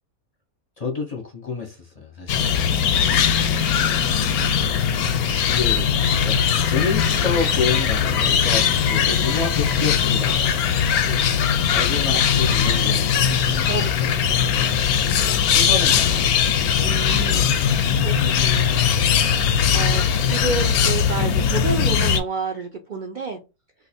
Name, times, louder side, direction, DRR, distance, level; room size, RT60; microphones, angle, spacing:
voice 1, 0.8-2.9 5.4-10.7 11.7-13.7 14.2-16.4, left 4 dB, 40° left, 0.6 m, -30 dB
sound 1, 2.3-22.2, left 7 dB, 90° left, 1.1 m, -20 dB
voice 2, 3.0-3.5 9.1-9.3 11.1-11.2 13.7-14.5 16.8-17.5 18.0-18.9 19.7-23.4, right 4 dB, 85° right, 0.4 m, -30 dB
2.6 x 2.5 x 4.1 m
omnidirectional pair, 1.5 m